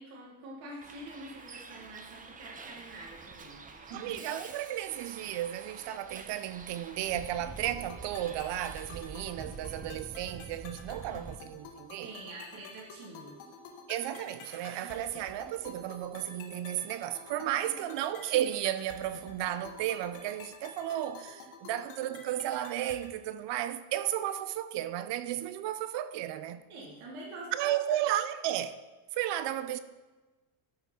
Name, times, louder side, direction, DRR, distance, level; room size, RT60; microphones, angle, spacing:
voice 1, 0.0-4.1 12.0-13.3 14.7-14.9 26.7-27.7, right 2 dB, 85° right, 3.7 m, -46 dB
Bus, 0.8-11.3, right 4 dB, 15° right, 0.6 m, -47 dB
voice 2, 3.9-12.1 13.9-26.6 27.5-28.8 29.1-29.8, right 12 dB, 60° right, 0.6 m, -34 dB
sound 1, 7.1-23.1, left 5 dB, 70° left, 1.6 m, -50 dB
13.5 x 5.8 x 4.4 m
cardioid pair, 150°, 49 cm